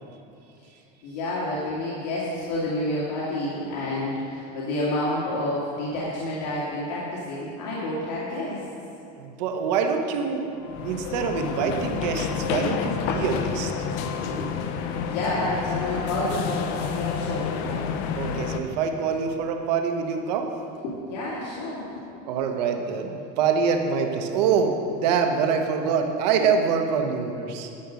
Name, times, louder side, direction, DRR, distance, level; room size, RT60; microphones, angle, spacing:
voice 1, 1.0-8.6 11.6-11.7 14.1-14.8 15.1-17.8 20.8-22.0, left 1 dB, 85° left, -7 dB, 2.2 m, -29 dB
voice 2, 9.2-10.5 10.8-13.7 18.2-20.5 22.3-27.7, right 6 dB, 85° right, 4 dB, 1.2 m, -25 dB
sound 1, 10.6-18.6, left 6 dB, 55° left, 0.7 m, -29 dB
11.5 x 6.3 x 6.4 m, 2.7 s
cardioid pair, 165°, 21 cm